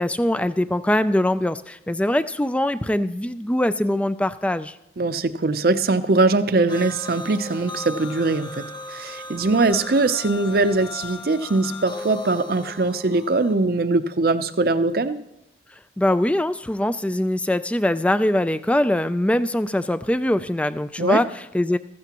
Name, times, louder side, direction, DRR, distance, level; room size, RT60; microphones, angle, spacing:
voice 1, 0.0-4.8 16.0-21.8, left 1 dB, 5° left, 14 dB, 0.3 m, -22 dB
voice 2, 5.0-15.2 21.0-21.2, right 3 dB, 55° right, 11 dB, 0.6 m, -21 dB
sound 1, 6.7-13.5, left 2 dB, 25° left, 0.9 m, -37 dB
15.0 x 14.5 x 2.9 m, 0.84 s
head